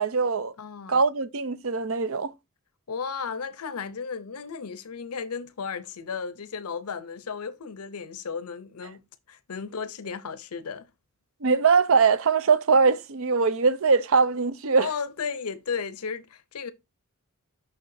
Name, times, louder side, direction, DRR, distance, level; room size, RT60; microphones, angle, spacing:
voice 1, 0.0-0.5 0.9-2.3 11.4-14.9, right 5 dB, 65° right, 0.6 m, -22 dB
voice 2, 0.6-1.0 2.9-9.0 9.3-10.9 14.8-16.7, left 6 dB, 85° left, 0.7 m, -34 dB
6.6 x 5.9 x 2.6 m
head